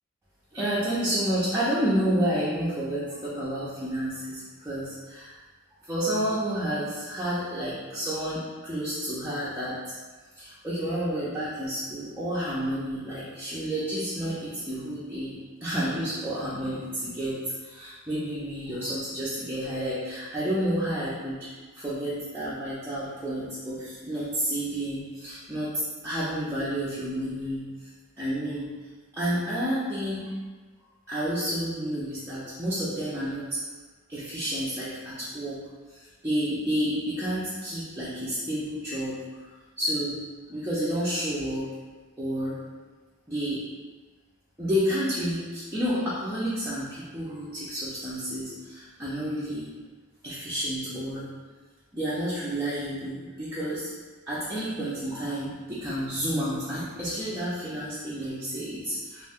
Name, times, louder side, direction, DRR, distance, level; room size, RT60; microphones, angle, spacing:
voice 1, 0.5-5.4 5.8-9.9 10.3-27.9 28.2-28.7 29.1-30.3 31.1-33.6 34.1-35.6 35.9-39.2 39.8-40.2 40.5-41.7 42.2-42.6 43.3-43.6 44.6-49.7 50.2-51.3 51.9-53.9 54.3-59.2, equal, 10° right, -10 dB, 0.5 m, -30 dB
2.5 x 2.2 x 3.4 m, 1.3 s
head